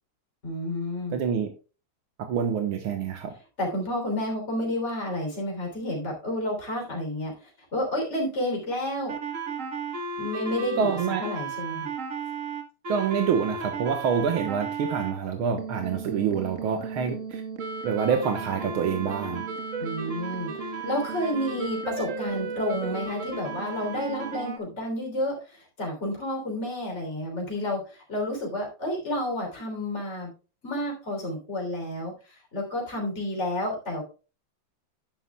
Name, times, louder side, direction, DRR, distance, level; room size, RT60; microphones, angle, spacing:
voice 1, 0.4-1.2 3.6-9.1 10.2-11.9 19.8-30.3 30.6-34.0, left 1 dB, 30° left, 0 dB, 3.7 m, -30 dB
voice 2, 1.1-1.5 2.2-3.3 10.8-11.2 12.9-17.4 17.8-19.4, right 7 dB, 85° right, 5 dB, 2.1 m, -27 dB
sound 1, 9.1-15.1 15.6-24.6, right 4 dB, 40° right, 1.5 m, -34 dB
11.0 x 10.0 x 2.3 m, 0.33 s
omnidirectional pair, 2.3 m